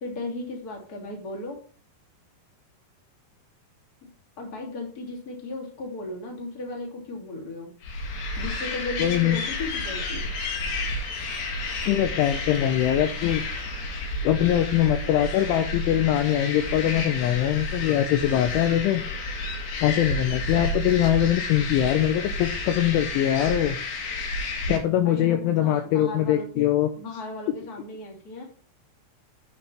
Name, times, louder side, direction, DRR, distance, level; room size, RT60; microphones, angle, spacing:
voice 1, 0.0-1.6 4.4-7.7 8.4-10.3 25.0-26.7 27.0-28.4, left 2 dB, 25° left, 0 dB, 2.0 m, -36 dB
sound 1, 7.8-24.8, left 2 dB, 60° left, 3.7 m, -31 dB
voice 2, 9.0-9.4 11.9-13.4 14.2-19.0 19.8-23.8 24.7-26.9, left 11 dB, 80° left, 8 dB, 2.9 m, -22 dB
8.6 x 6.8 x 5.8 m, 0.43 s
omnidirectional pair, 6.0 m